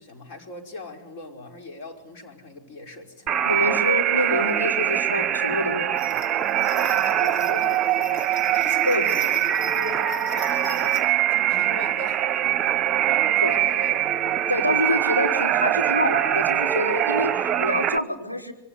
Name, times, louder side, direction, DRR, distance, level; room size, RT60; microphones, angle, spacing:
voice 1, 0.0-3.7 6.7-14.0, left 3 dB, 45° left, 4 dB, 5.2 m, -40 dB
sound 1, 3.3-18.0, right 11 dB, 30° right, 1.0 m, -23 dB
voice 2, 3.4-5.9 8.9-9.1 13.4-13.5 14.5-18.5, left 1 dB, 90° left, 0 dB, 4.4 m, -26 dB
sound 2, 6.0-11.0, left 1 dB, 30° left, 6.9 m, -43 dB
26.5 x 24.5 x 8.3 m, 0.79 s
figure-of-eight pair, 90°, 0 cm